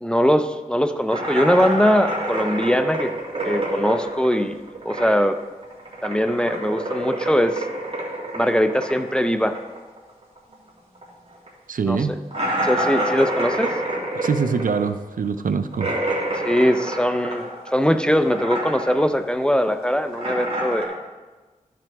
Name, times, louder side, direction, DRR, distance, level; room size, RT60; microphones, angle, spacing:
voice 1, 0.0-3.1 3.4-5.4 6.0-7.6 8.3-9.6 11.8-12.2 12.6-13.7 16.4-17.5 17.7-21.0, equal, 5° left, 9 dB, 0.5 m, -21 dB
sound 1, 1.1-5.4 5.6-10.7 10.9-11.0 11.5-11.6 12.3-17.9 18.2-19.1 19.4-20.8, right 1 dB, 45° right, 2.3 m, -27 dB
voice 2, 11.7-12.1 14.2-15.9, right 5 dB, 70° right, 11 dB, 0.5 m, -23 dB
13.0 x 6.1 x 3.5 m, 1.3 s
wide cardioid pair, 60°, 14 cm